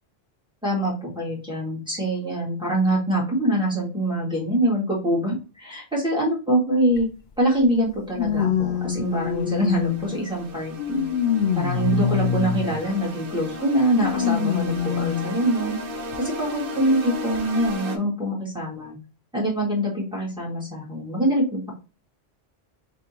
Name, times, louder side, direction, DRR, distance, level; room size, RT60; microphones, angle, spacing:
voice 1, 0.6-7.1 7.4-11.0 11.5-15.8 16.2-19.0 19.3-21.7, right 1 dB, 5° right, -5 dB, 1.8 m, -24 dB
sound 1, 6.9-7.0 8.1-10.2 10.8-12.8 14.0-15.4 16.1-16.2 17.3-17.4, left 9 dB, 85° left, 0.9 m, -25 dB
sound 2, 8.8-18.0, left 1 dB, 60° right, 1.0 m, -35 dB
3.5 x 2.7 x 4.2 m, 0.32 s
omnidirectional pair, 1.1 m